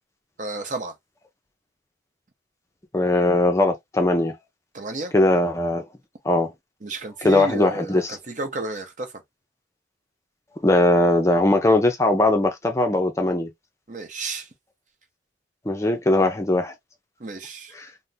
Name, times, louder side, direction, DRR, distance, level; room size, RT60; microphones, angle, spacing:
voice 1, 0.4-0.9 4.7-5.1 6.8-9.1 13.9-14.5 17.2-17.7, right 2 dB, 40° right, 0.7 m, -32 dB
voice 2, 2.9-4.3 5.1-5.8 6.2-6.5 7.2-8.2 10.6-13.5 15.7-16.7 17.7-17.9, left 1 dB, 15° left, 0.4 m, -20 dB
3.6 x 2.0 x 2.7 m
head